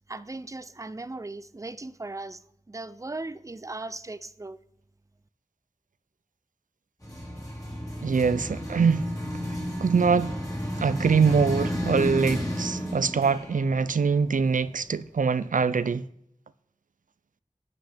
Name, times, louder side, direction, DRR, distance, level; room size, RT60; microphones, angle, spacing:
voice 1, 0.1-2.4 2.7-4.6, right 2 dB, 25° right, 0.5 m, -38 dB
sound 1, 7.0-15.0, equal, 25° left, 2.7 m, -32 dB
voice 2, 8.0-9.1 9.5-10.3 10.8-16.0, right 5 dB, 90° right, 0.4 m, -24 dB
11.5 x 7.7 x 3.4 m
wide cardioid pair, 45°, 13 cm